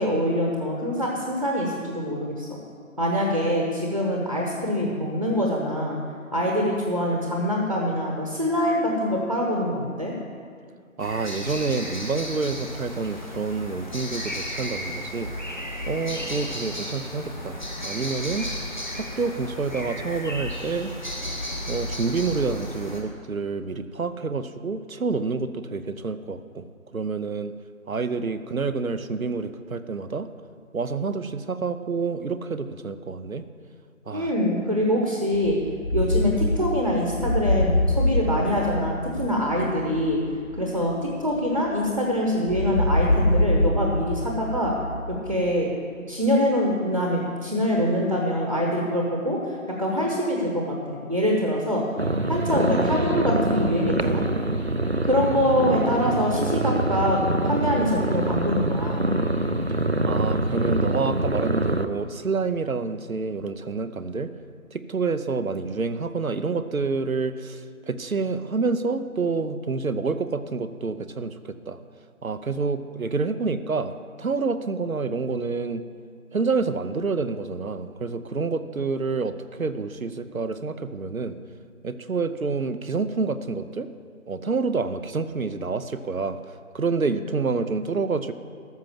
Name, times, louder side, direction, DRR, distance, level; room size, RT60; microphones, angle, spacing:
voice 1, 0.0-2.6 3.0-6.0 6.3-10.1 34.1-35.6 35.9-40.2 40.5-44.7 45.1-45.7 46.1-51.8 52.3-54.2 55.0-59.1, equal, 30° right, -2 dB, 1.1 m, -24 dB
sound 1, 11.0-23.0, left 1 dB, 35° left, 1.3 m, -34 dB
voice 2, 11.0-15.3 15.9-18.5 18.9-20.9 21.7-26.6 26.9-27.5 27.9-30.3 30.7-33.5 34.1-34.3 60.1-64.3 64.7-71.8 72.2-75.8 76.3-81.4 81.8-83.9 84.3-86.4 86.7-88.3, right 4 dB, 70° right, 11 dB, 0.8 m, -28 dB
sound 2, 35.3-42.0 42.5-45.6, left 1 dB, 70° left, 2.2 m, -25 dB
sound 3, 52.0-61.9, right 1 dB, 50° right, 0.5 m, -25 dB
13.5 x 6.0 x 7.5 m, 2.1 s
figure-of-eight pair, 175°, 42 cm